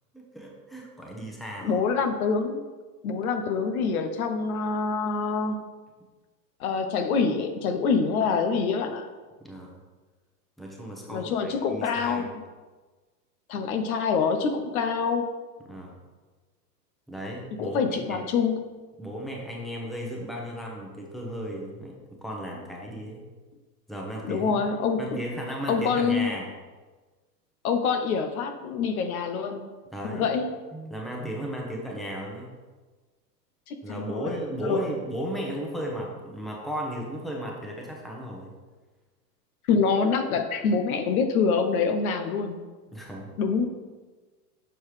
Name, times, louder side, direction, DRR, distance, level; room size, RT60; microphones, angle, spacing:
voice 1, 0.1-1.8 9.4-9.8 10.6-12.3 15.7-16.0 17.1-18.2 19.0-23.2 23.9-24.5 25.0-26.5 29.9-30.3 30.7-32.5 33.8-38.5 42.9-43.3, equal, ahead, -2 dB, 0.9 m, -35 dB
voice 2, 1.6-2.6 3.0-5.6 6.6-9.0 11.1-12.4 13.5-15.3 17.6-18.7 24.3-25.2 25.7-26.3 27.6-29.7 30.1-30.5 33.7-34.3 34.6-34.9 39.7-42.7 43.4-43.7, left 5 dB, 60° left, 7 dB, 0.8 m, -26 dB
6.9 x 5.5 x 3.2 m, 1.3 s
hypercardioid pair, 115°, 49 cm